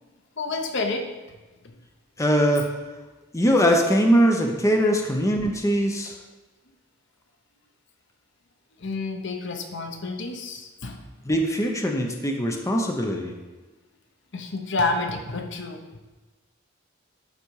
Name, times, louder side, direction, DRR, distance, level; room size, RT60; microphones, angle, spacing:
voice 1, 0.4-1.1 8.8-11.0 14.3-15.9, left 3 dB, 65° left, 4 dB, 0.9 m, -29 dB
voice 2, 2.2-2.7 3.3-6.1 11.2-13.3, equal, 15° left, 1 dB, 0.8 m, -21 dB
11.5 x 4.2 x 4.7 m, 1.2 s
head